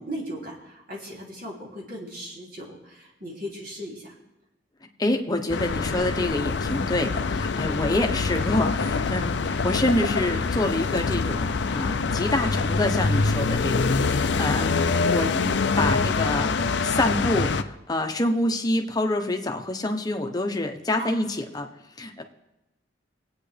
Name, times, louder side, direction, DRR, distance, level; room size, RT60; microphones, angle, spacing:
voice 1, 0.0-4.1 10.0-10.3 15.2-15.5 21.0-21.2, equal, 50° right, -4 dB, 3.3 m, -37 dB
voice 2, 5.0-15.3 15.8-21.7 22.0-22.2, left 1 dB, 20° left, 3 dB, 1.0 m, -27 dB
sound 1, 5.5-17.6, left 4 dB, 65° left, 0.5 m, -25 dB
23.0 x 8.9 x 3.4 m, 0.94 s
head